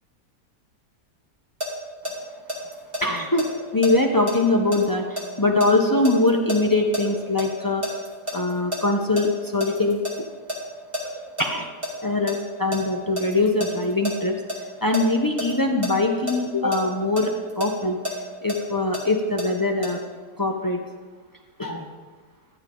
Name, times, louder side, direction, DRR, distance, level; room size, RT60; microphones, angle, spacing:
sound 1, 1.6-7.5 7.8-10.2 10.5-10.6 10.9-11.5 11.8-15.0 15.4-15.5 15.8-15.9 16.3-16.4 16.7-19.5 19.8-19.9, equal, 20° right, 2.1 m, -30 dB
voice 1, 3.0-8.0 8.3-10.3 11.4-11.7 12.0-14.4 14.8-18.0 18.4-20.0 20.4-20.8 21.6-21.9, left 2 dB, 30° left, 2 dB, 0.4 m, -22 dB
13.5 x 10.5 x 3.8 m, 1.4 s
omnidirectional pair, 1.7 m